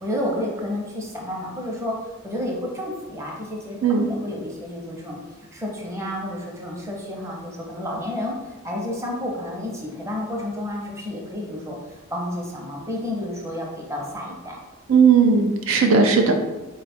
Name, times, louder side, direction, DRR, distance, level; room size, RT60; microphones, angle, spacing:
voice 1, 0.0-1.9 2.2-5.2 5.5-14.6, left 1 dB, 15° right, -2 dB, 0.7 m, -30 dB
voice 2, 14.9-16.3, right 5 dB, 90° right, 4 dB, 0.5 m, -16 dB
3.8 x 2.3 x 4.2 m, 1.1 s
head